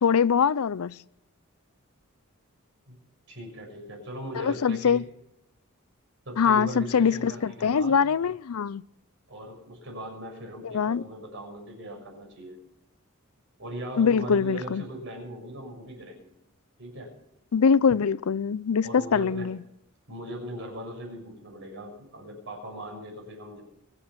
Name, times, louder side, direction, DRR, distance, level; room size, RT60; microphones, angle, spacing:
voice 1, 0.0-1.0 4.4-5.0 6.4-8.8 10.6-11.0 14.0-14.8 17.5-19.6, left 6 dB, 85° left, 0.5 m, -23 dB
voice 2, 3.3-5.0 6.2-8.0 9.3-12.6 13.6-16.3 16.8-17.1 18.8-19.5 20.1-23.6, right 1 dB, 60° right, 6.3 m, -39 dB
23.0 x 8.9 x 5.8 m
head